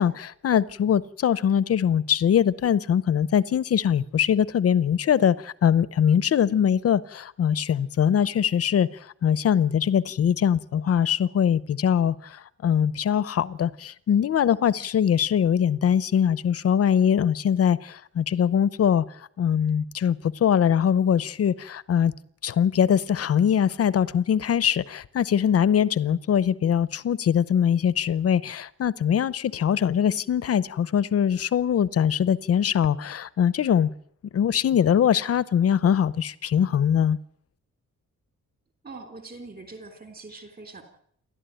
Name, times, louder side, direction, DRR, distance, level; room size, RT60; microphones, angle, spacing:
voice 1, 0.0-8.9 9.2-19.0 19.4-22.1 22.4-33.9 34.3-37.2, left 8 dB, 50° left, 18 dB, 0.8 m, -22 dB
voice 2, 38.8-40.8, right 3 dB, 30° right, 6 dB, 3.6 m, -42 dB
28.5 x 12.5 x 9.1 m, 0.68 s
wide cardioid pair, 170°, 31 cm